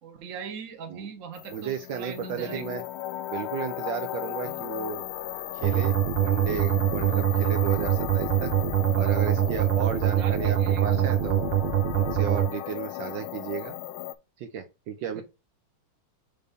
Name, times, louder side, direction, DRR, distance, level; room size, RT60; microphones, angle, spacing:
voice 1, 0.0-2.6 4.4-4.6 10.2-11.0 15.1-15.2, right 7 dB, 45° right, 5 dB, 1.2 m, -40 dB
sound 1, 1.3-14.1, left 14 dB, 80° left, 1.4 m, -36 dB
voice 2, 1.5-2.8 3.3-5.0 5.5-8.5 9.0-11.4 12.0-13.8 14.4-15.2, right 8 dB, 70° right, 6 dB, 1.3 m, -34 dB
sound 2, 5.6-12.5, right 11 dB, 85° right, 1.6 m, -24 dB
5.4 x 3.4 x 5.2 m, 0.27 s
omnidirectional pair, 2.3 m